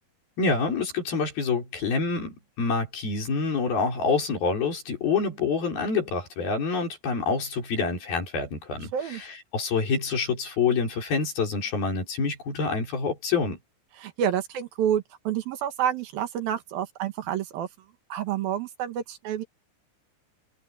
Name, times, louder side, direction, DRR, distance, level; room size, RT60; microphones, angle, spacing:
voice 1, 0.4-9.3 9.5-13.6, left 4 dB, 65° left, 7.1 m, -27 dB
voice 2, 14.0-17.7 18.1-19.4, right 9 dB, 70° right, 3.1 m, -28 dB
omnidirectional pair, 4.5 m